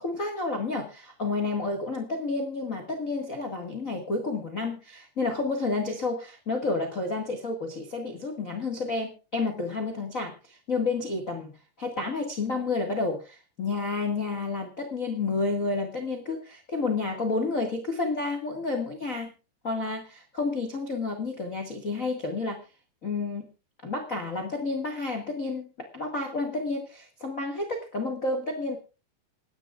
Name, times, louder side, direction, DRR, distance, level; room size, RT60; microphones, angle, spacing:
voice 1, 0.0-11.5 11.8-19.3 19.6-22.6 23.0-23.5 23.8-28.8, left 3 dB, 40° left, 3 dB, 1.1 m, -30 dB
27.0 x 10.5 x 2.4 m, 0.31 s
omnidirectional pair, 4.7 m